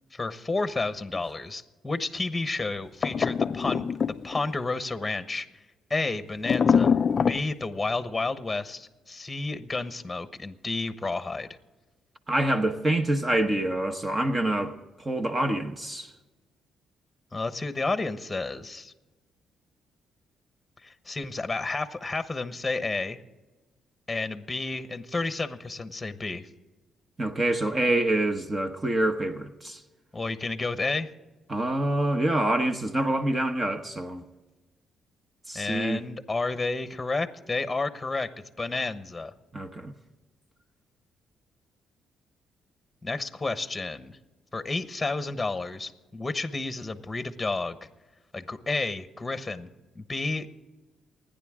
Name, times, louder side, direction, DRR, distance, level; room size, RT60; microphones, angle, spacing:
voice 1, 0.1-5.5 5.9-6.9 7.3-11.5 17.3-18.9 20.8-23.2 24.1-26.5 30.1-31.1 35.5-39.3 43.0-44.2 44.5-47.8 48.3-49.7 49.9-50.5, left 3 dB, 15° left, 1.1 m, -31 dB
sound 1, 3.0-4.5 6.4-7.4, left 6 dB, 45° left, 0.4 m, -24 dB
voice 2, 12.3-14.7 15.0-16.1 27.2-29.8 31.5-34.2 35.5-36.0 39.5-39.9, right 1 dB, 25° right, 1.1 m, -26 dB
29.0 x 10.0 x 3.7 m
cardioid pair, 90°, 0 cm